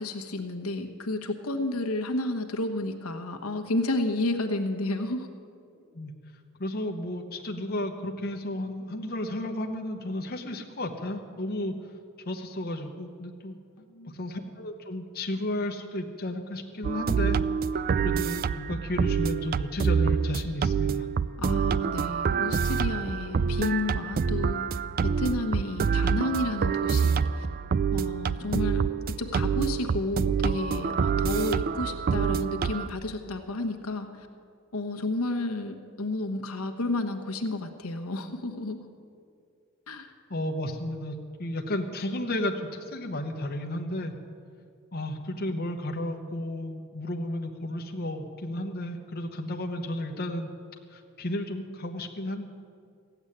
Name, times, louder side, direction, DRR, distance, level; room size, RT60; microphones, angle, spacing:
voice 1, 0.0-5.3 13.9-14.1 21.4-27.5 27.9-28.8 29.2-34.3 34.7-38.8 39.9-40.1, left 2 dB, 85° left, 5 dB, 1.2 m, -31 dB
voice 2, 6.6-11.7 12.3-13.6 14.1-17.4 17.7-21.1 40.3-44.1 44.9-50.5 50.9-52.5, left 1 dB, 45° left, 3 dB, 1.0 m, -33 dB
sound 1, 16.8-32.9, right 6 dB, 45° right, 0.3 m, -27 dB
15.5 x 8.0 x 9.9 m, 2.3 s
head